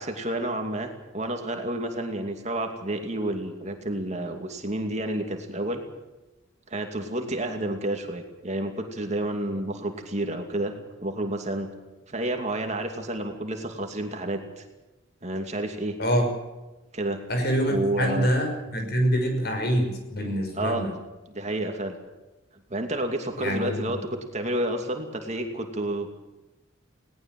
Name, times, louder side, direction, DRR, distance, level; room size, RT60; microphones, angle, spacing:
voice 1, 0.0-5.8 6.7-11.7 12.1-14.6 15.2-16.0 16.9-17.2 17.7-18.3 20.5-20.8 21.3-22.0 22.7-24.0 24.3-26.1, right 1 dB, 35° right, 4 dB, 2.6 m, -30 dB
voice 2, 17.3-20.9 23.4-24.0, equal, 50° left, 4 dB, 5.9 m, -25 dB
21.0 x 18.5 x 7.8 m, 1.1 s
head